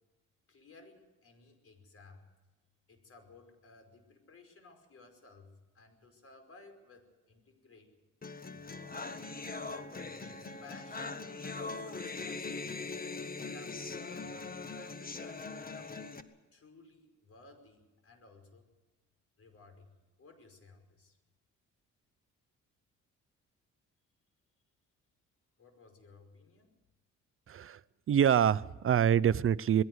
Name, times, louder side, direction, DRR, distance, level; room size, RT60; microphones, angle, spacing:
voice 1, 0.5-2.3 2.9-7.9 8.5-8.9 9.6-12.9 13.5-16.0 16.5-18.6 19.4-19.9 20.2-21.2 25.6-26.7, left 3 dB, 50° left, 6 dB, 5.2 m, -57 dB
sound 1, 8.2-16.2, left 3 dB, 30° left, 1.6 m, -41 dB
voice 2, 27.5-27.8 28.1-29.8, right 9 dB, 45° right, 16 dB, 0.7 m, -26 dB
21.5 x 16.5 x 8.0 m, 1.2 s
cardioid pair, 90°, 30 cm